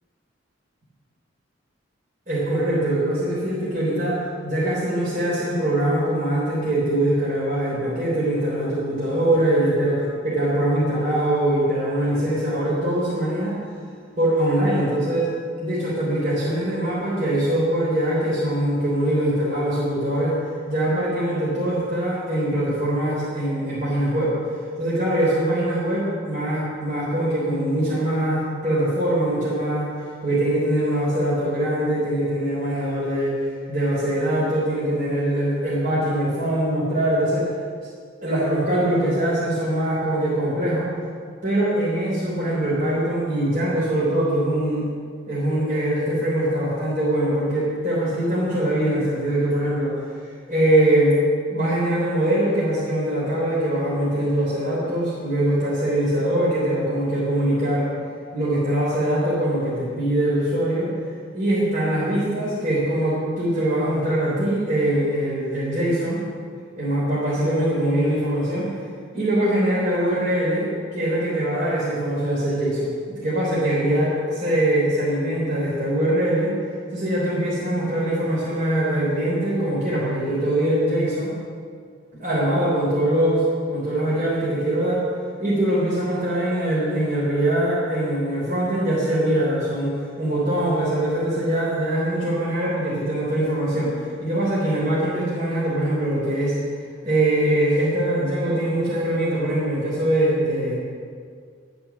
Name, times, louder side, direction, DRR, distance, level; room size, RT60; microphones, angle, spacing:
voice 1, 2.3-4.2 4.4-13.6 14.2-15.3 15.6-20.4 20.7-24.3 24.8-29.9 30.2-33.4 33.7-37.5 38.2-40.9 41.4-44.9 45.3-50.0 50.5-51.1 51.5-57.9 58.3-60.9 61.3-66.2 66.8-68.7 69.1-76.5 76.9-81.3 82.1-85.0 85.4-93.9 94.2-96.5 97.0-100.7, right 1 dB, 45° right, -7 dB, 3.6 m, -22 dB
12.0 x 8.9 x 7.2 m, 2.1 s
head